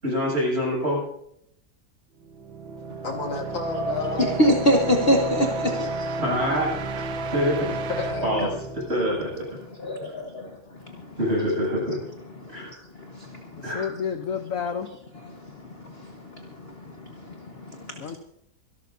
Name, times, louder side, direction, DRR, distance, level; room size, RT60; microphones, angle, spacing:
voice 1, 0.0-1.0 6.2-7.0 7.3-7.7 8.2-8.5 8.9-9.4 11.2-12.0 12.5-12.7 13.6-13.9, equal, 30° right, 8.2 m, -25 dB
sound 1, 2.2-9.9, right 3 dB, 85° right, 1.8 m, -32 dB
voice 2, 3.0-4.2 7.7-8.5, left 4 dB, 80° left, 3.3 m, -31 dB
voice 3, 3.7-6.2 9.7-11.2 12.4-13.8 15.3-18.2, equal, 35° left, 1.5 m, -27 dB
voice 4, 13.6-15.0 18.0-18.2, left 7 dB, 55° left, 1.1 m, -30 dB
26.0 x 13.0 x 2.7 m
omnidirectional pair, 2.0 m